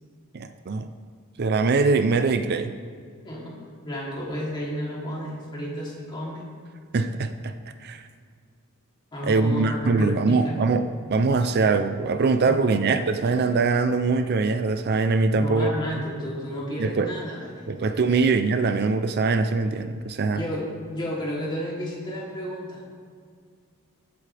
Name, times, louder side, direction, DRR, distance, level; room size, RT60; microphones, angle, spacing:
voice 1, 0.3-0.9 1.4-2.7 6.9-7.5 7.8-8.0 9.2-15.7 16.8-17.1 17.7-20.4, right 4 dB, 50° right, 9 dB, 0.5 m, -22 dB
voice 2, 3.2-6.4 9.1-10.6 12.5-12.8 15.3-18.2 20.3-22.8, equal, 20° left, -5 dB, 3.0 m, -32 dB
22.0 x 8.4 x 3.4 m, 2.1 s
head